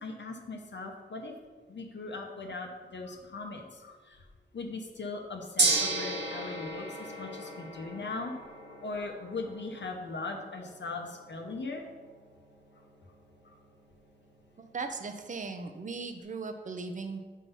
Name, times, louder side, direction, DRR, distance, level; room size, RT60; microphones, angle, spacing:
voice 1, 0.0-1.3 1.7-4.2 4.5-8.3 8.8-11.8, left 3 dB, 70° left, 2 dB, 0.8 m, -39 dB
Gong, 5.6-15.8, right 3 dB, 65° right, 1.3 m, -36 dB
voice 2, 14.6-17.2, right 4 dB, 45° right, 7 dB, 0.6 m, -38 dB
5.5 x 4.6 x 5.5 m, 1.4 s
wide cardioid pair, 95°, 19 cm